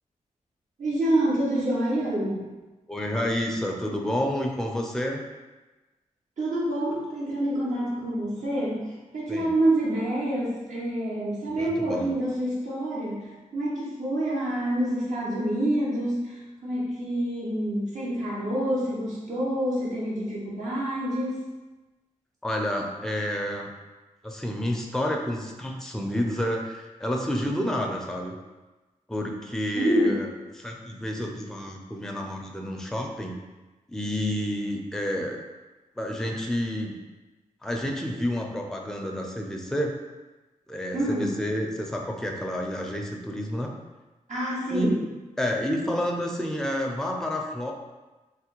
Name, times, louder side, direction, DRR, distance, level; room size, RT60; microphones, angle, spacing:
voice 1, 0.8-2.5 6.4-8.8 9.1-16.3 16.6-21.4 29.7-30.2 40.9-41.4 44.3-45.0, right 1 dB, 65° right, -7 dB, 0.9 m, -27 dB
voice 2, 2.9-5.2 9.3-9.5 11.5-12.1 22.4-23.7 24.2-28.4 29.1-30.3 30.5-33.4 33.9-35.5 36.0-37.0 37.6-40.0 40.7-43.7 44.7-44.9 45.4-47.7, equal, 5° left, 0 dB, 0.5 m, -29 dB
3.3 x 2.2 x 3.0 m, 1.2 s
cardioid pair, 60°, 14 cm